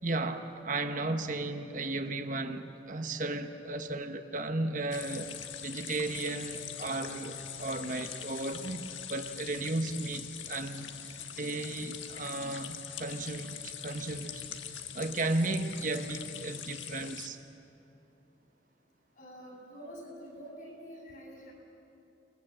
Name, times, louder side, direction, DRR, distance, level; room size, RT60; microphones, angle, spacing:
voice 1, 0.0-5.3 5.6-17.4, right 2 dB, 45° right, 1.1 m, -35 dB
sound 1, 4.9-17.3, left 8 dB, 85° left, 1.4 m, -43 dB
voice 2, 19.2-21.5, equal, 45° left, 7.9 m, -47 dB
29.5 x 21.0 x 7.7 m
head